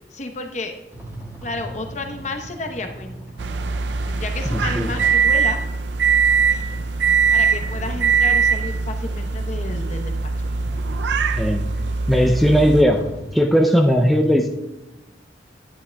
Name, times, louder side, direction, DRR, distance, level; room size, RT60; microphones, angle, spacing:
voice 1, 0.1-0.7 1.4-3.2 4.1-5.6 7.3-10.3, left 3 dB, 40° left, 4 dB, 0.9 m, -31 dB
sound 1, 0.9-13.4, right 1 dB, 20° right, 1.8 m, -41 dB
sound 2, 3.4-12.8, right 5 dB, 85° right, 0.5 m, -21 dB
voice 2, 4.5-4.9 11.4-11.6 12.1-13.0 13.3-14.5, equal, ahead, 1 dB, 0.4 m, -17 dB
11.0 x 9.7 x 2.3 m, 1.0 s
head